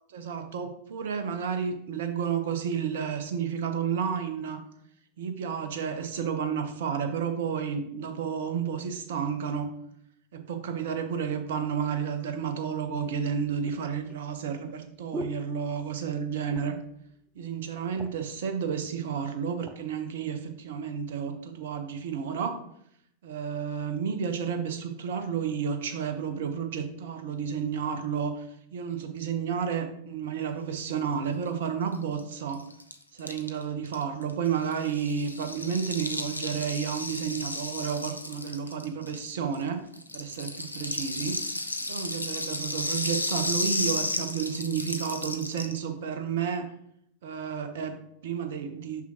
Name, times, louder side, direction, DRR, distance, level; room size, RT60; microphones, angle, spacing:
voice 1, 0.1-4.6 5.2-9.7 10.3-16.8 17.4-22.6 23.2-28.5 28.7-32.6 33.1-39.8 40.1-41.4 41.9-46.7 47.2-49.0, right 7 dB, 60° right, 8 dB, 0.8 m, -31 dB
sound 1, 13.0-16.2 16.4-16.9 17.3-17.4 17.7-18.4 19.1-19.8 20.4-20.6, right 1 dB, 10° right, 0.6 m, -42 dB
Rattle (instrument), 31.9-32.0 32.2-32.3 32.5-39.6 39.9-45.8, left 1 dB, 85° left, 0.5 m, -33 dB
6.0 x 5.8 x 2.9 m, 0.72 s
figure-of-eight pair, 90°, 0 cm